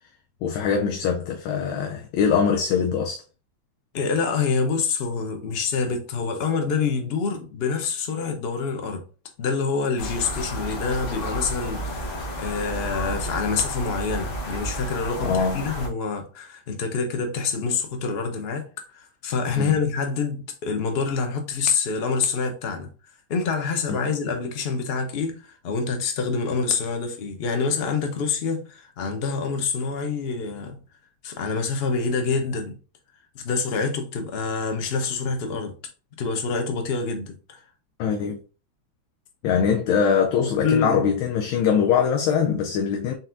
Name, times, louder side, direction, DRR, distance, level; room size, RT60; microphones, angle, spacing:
voice 1, 0.4-3.2 15.2-15.7 19.6-19.8 23.9-24.0 38.0-38.4 39.4-43.1, left 7 dB, 85° left, 1.4 m, -22 dB
voice 2, 3.9-9.0 9.4-22.9 23.3-30.8 31.2-32.7 33.3-35.7 36.2-37.6 40.6-41.1, left 5 dB, 55° left, 0.7 m, -26 dB
sound 1, 10.0-15.9, equal, 30° left, 1.1 m, -31 dB
4.1 x 4.0 x 2.5 m
omnidirectional pair, 2.1 m